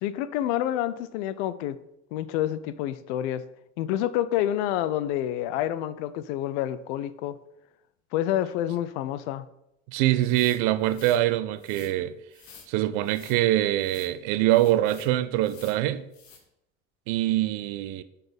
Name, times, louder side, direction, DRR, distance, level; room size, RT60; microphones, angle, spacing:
voice 1, 0.0-1.8 2.1-3.4 3.8-7.4 8.1-9.5, left 12 dB, 70° left, 0.5 m, -28 dB
voice 2, 9.9-12.1 12.7-16.0 17.1-18.0, right 14 dB, 65° right, 0.6 m, -24 dB
sound 1, 10.2-11.2 11.6-11.9 12.3-12.7 13.0-13.4 13.8-14.1 14.5-15.1 15.4-15.8 16.1-16.4, left 6 dB, 50° left, 1.5 m, -50 dB
5.8 x 4.2 x 5.2 m
hypercardioid pair, 65°, 36 cm